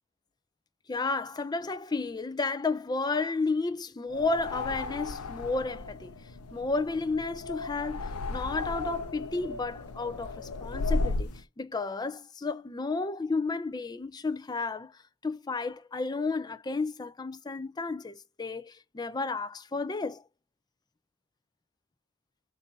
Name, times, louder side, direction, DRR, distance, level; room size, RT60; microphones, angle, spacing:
voice 1, 0.9-6.1 6.5-20.2, left 3 dB, 20° left, 0.3 m, -32 dB
sound 1, 4.1-11.4, left 3 dB, 80° left, 0.6 m, -35 dB
3.8 x 2.6 x 3.9 m
head